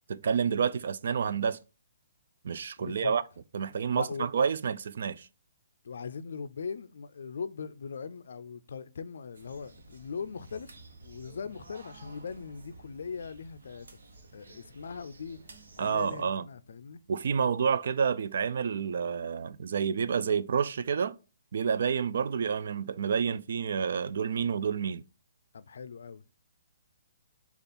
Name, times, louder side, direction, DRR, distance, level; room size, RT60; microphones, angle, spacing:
voice 1, 0.1-1.6 2.4-3.2 3.5-5.3 15.8-16.4 17.1-21.2 21.5-25.0, right 6 dB, 60° right, 0.3 m, -29 dB
voice 2, 2.8-3.1 3.9-4.3 5.8-10.7 11.0-13.9 14.3-15.4 15.8-17.0 25.5-26.2, left 5 dB, 70° left, 0.4 m, -40 dB
sound 1, 9.3-16.3, right 2 dB, 85° right, 0.9 m, -53 dB
sound 2, 10.3-17.4, right 2 dB, 40° right, 1.6 m, -61 dB
5.1 x 2.4 x 4.1 m
hypercardioid pair, 165°, 0 cm